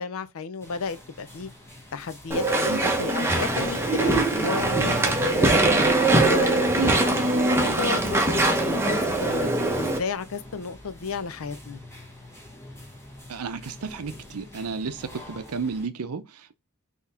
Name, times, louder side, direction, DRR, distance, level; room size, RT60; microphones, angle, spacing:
voice 1, 0.0-1.5 1.9-5.8 6.2-7.2 7.6-11.8, left 4 dB, 65° left, 0.6 m, -33 dB
sound 1, 0.6-15.9, left 2 dB, 10° left, 1.3 m, -43 dB
Walk footsteps / Chatter / Squeak, 2.3-10.0, right 2 dB, 10° right, 0.9 m, -22 dB
voice 2, 13.3-16.6, right 4 dB, 80° right, 0.6 m, -32 dB
4.0 x 3.0 x 4.2 m
head